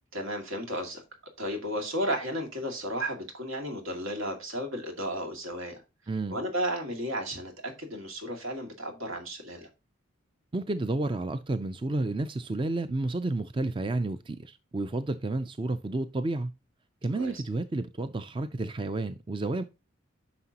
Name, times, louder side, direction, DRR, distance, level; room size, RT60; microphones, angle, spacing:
voice 1, 0.1-1.0 1.4-5.8 6.3-9.7 17.2-17.4, equal, 80° right, 2.2 m, -33 dB
voice 2, 10.5-16.5 17.0-19.6, right 2 dB, 25° right, 0.4 m, -31 dB
9.7 x 6.0 x 2.8 m
head